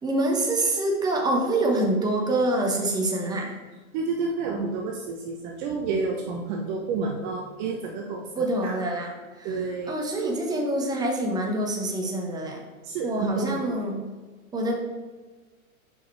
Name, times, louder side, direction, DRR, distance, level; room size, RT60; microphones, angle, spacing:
voice 1, 0.0-3.6 8.3-12.6 13.0-14.0 14.5-14.8, right 1 dB, 10° right, 1 dB, 1.0 m, -26 dB
voice 2, 3.9-9.0 9.4-10.0 12.8-13.8, right 4 dB, 35° right, 1 dB, 0.8 m, -30 dB
7.0 x 5.1 x 4.6 m, 1.3 s
hypercardioid pair, 130°, 42 cm